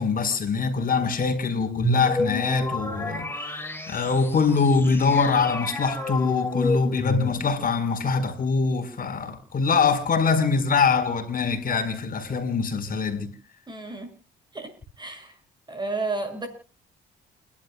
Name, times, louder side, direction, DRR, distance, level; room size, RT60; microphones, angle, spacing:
voice 1, 0.0-3.6 3.9-13.3, left 5 dB, 45° left, 4.5 m, -23 dB
sound 1, 1.4-7.7, left 1 dB, 10° left, 3.1 m, -30 dB
voice 2, 13.7-14.1 14.5-14.7 15.0-15.3 15.7-16.5, right 3 dB, 20° right, 6.8 m, -31 dB
29.5 x 12.0 x 2.3 m
cardioid pair, 90°, 20 cm